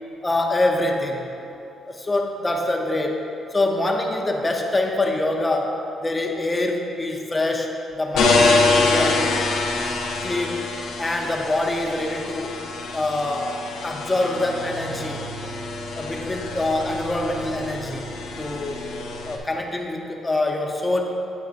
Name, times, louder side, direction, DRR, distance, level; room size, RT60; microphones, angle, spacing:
voice 1, 0.2-1.3 1.9-3.2 3.5-9.3 10.2-10.7 11.0-12.6 12.9-15.3 15.9-18.1 18.4-18.8 19.2-21.0, left 2 dB, 20° left, 1 dB, 0.7 m, -25 dB
sound 1, 8.1-19.4, left 3 dB, 85° left, 0.8 m, -25 dB
9.2 x 6.5 x 2.5 m, 2.7 s
cardioid pair, 90°, 0 cm